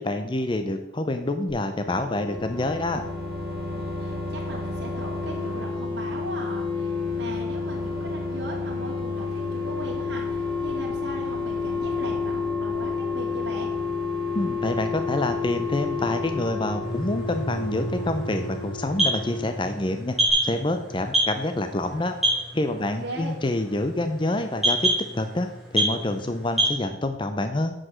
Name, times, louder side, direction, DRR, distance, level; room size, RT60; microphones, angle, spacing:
voice 1, 0.0-3.0 14.3-20.2 20.4-22.2 22.5-27.7, left 1 dB, 25° left, 7 dB, 0.6 m, -27 dB
sound 1, 1.7-20.0 20.3-20.4, left 4 dB, 30° right, 2.8 m, -30 dB
voice 2, 3.7-13.7 22.8-23.4, right 1 dB, 60° right, -1 dB, 2.5 m, -38 dB
sound 2, 16.8-26.8, right 1 dB, ahead, 2.3 m, -28 dB
9.8 x 5.1 x 6.3 m, 0.97 s
head